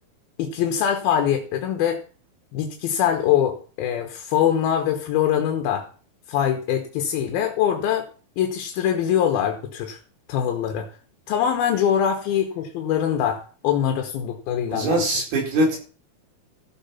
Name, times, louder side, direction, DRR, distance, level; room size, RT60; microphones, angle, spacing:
voice 1, 0.4-2.0 2.5-5.8 6.3-8.1 8.4-10.0 10.3-10.9 11.3-15.0, left 9 dB, 75° left, 5 dB, 3.0 m, -23 dB
voice 2, 14.7-15.8, right 1 dB, 75° right, -1 dB, 6.6 m, -22 dB
14.5 x 7.4 x 5.8 m, 0.39 s
omnidirectional pair, 4.5 m